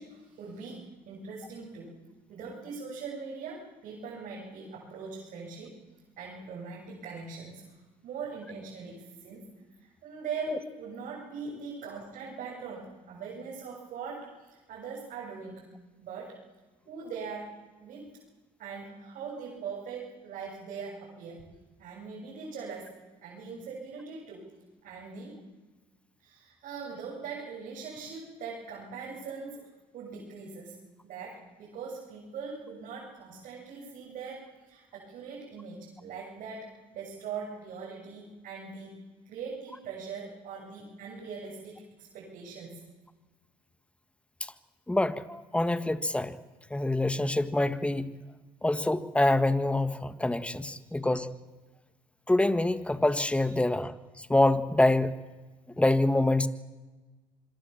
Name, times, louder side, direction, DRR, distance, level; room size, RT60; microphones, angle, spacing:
voice 1, 0.0-1.9 2.3-5.8 6.2-9.5 9.8-15.7 16.0-16.4 16.9-17.5 17.8-18.1 18.6-21.4 21.8-24.5 24.8-25.4 26.2-29.7 29.9-39.0 39.2-42.8 53.4-53.6, right 5 dB, 70° right, -4 dB, 7.9 m, -41 dB
voice 2, 44.9-46.3 46.7-48.1 48.6-51.3 52.3-55.2 55.8-56.5, left 2 dB, 10° left, 12 dB, 1.6 m, -26 dB
25.5 x 22.5 x 7.3 m, 1.2 s
supercardioid pair, 85°, 14 cm